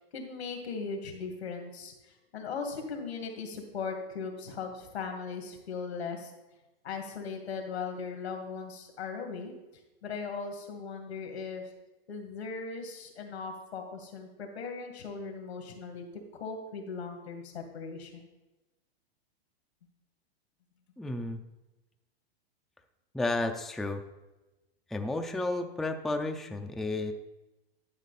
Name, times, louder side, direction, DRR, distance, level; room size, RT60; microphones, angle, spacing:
voice 1, 0.0-1.9 2.3-6.3 6.8-9.5 10.0-11.6 12.1-16.1 16.3-18.2, left 5 dB, 80° left, 3 dB, 2.3 m, -38 dB
voice 2, 21.0-21.4 23.1-24.0 24.9-27.1, left 2 dB, ahead, 5 dB, 0.4 m, -32 dB
11.5 x 6.4 x 4.1 m, 1.0 s
hypercardioid pair, 115°, 31 cm